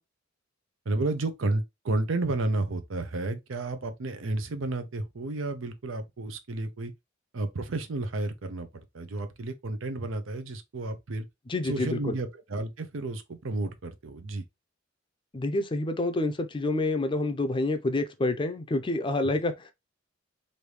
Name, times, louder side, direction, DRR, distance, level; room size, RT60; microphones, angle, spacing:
voice 1, 0.9-6.9 7.3-11.3 11.6-14.4, right 2 dB, 90° right, 0.7 m, -32 dB
voice 2, 11.5-12.2 15.3-19.7, left 2 dB, 25° left, 0.5 m, -28 dB
3.3 x 2.6 x 3.1 m
head